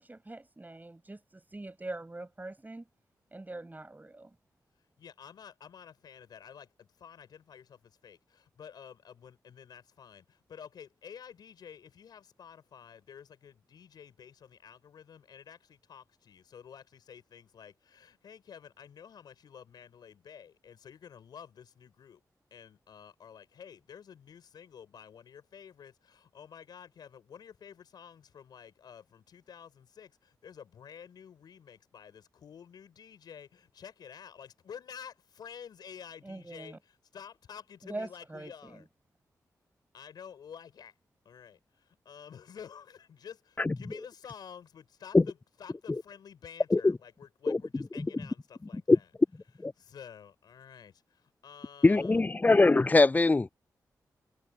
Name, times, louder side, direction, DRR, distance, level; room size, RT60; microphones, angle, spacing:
voice 1, 0.0-2.8 3.3-4.3 36.2-36.8 37.8-38.8, right 2 dB, 25° right, 5.4 m, -43 dB
voice 2, 5.0-22.2 22.5-38.9 39.9-40.9 41.2-49.1 49.8-52.2, left 8 dB, 80° left, 6.2 m, -50 dB
voice 3, 51.8-53.5, left 3 dB, 25° left, 0.4 m, -22 dB
cardioid pair, 45°, 7 cm